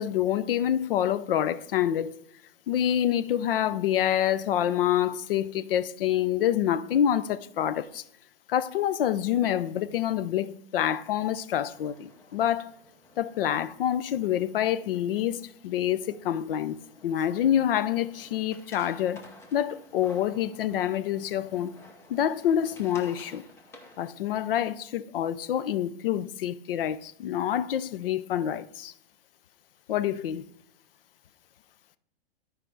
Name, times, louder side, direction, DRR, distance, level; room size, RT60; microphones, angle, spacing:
voice 1, 0.0-2.2 2.7-8.0 8.5-12.7 13.2-16.8 17.0-19.2 19.5-21.7 22.1-23.5 24.0-28.9 29.9-30.4, left 10 dB, 60° left, 0.7 m, -27 dB
sound 1, 11.7-24.1, left 1 dB, 10° left, 0.8 m, -53 dB
12.0 x 4.9 x 4.6 m
hypercardioid pair, 150°, 31 cm